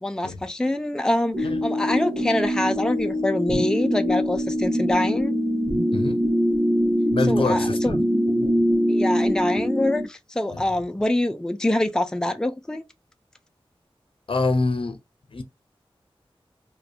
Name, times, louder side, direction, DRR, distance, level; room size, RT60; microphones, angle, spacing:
voice 1, 0.0-5.3 7.3-8.0 8.9-12.8, left 1 dB, 5° left, 0.4 m, -25 dB
sound 1, 1.3-10.0, equal, 35° right, 1.0 m, -23 dB
voice 2, 7.1-8.9 10.5-10.7 14.3-15.0 15.3-15.4, left 3 dB, 65° left, 0.6 m, -27 dB
2.7 x 2.2 x 2.4 m
wide cardioid pair, 45°, 10 cm